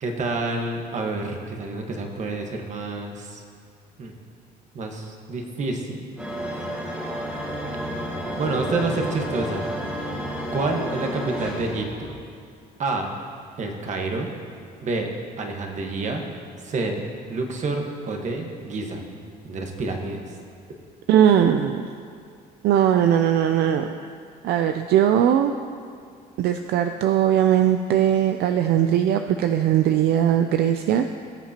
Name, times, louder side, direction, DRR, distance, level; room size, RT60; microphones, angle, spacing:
voice 1, 0.0-3.4 4.0-4.1 4.7-6.1 8.4-9.7 10.5-12.1 12.8-13.1 13.6-14.3 14.8-15.1 15.4-16.2 16.6-19.1 19.4-20.3, right 3 dB, 45° right, 2 dB, 1.4 m, -28 dB
sound 1, 6.2-12.2, equal, 10° right, 2.2 m, -31 dB
voice 2, 21.1-21.9 22.6-23.9 24.4-25.5 26.4-31.1, right 10 dB, 70° right, 6 dB, 0.5 m, -19 dB
18.5 x 7.3 x 2.9 m, 2.3 s
cardioid pair, 110°, 17 cm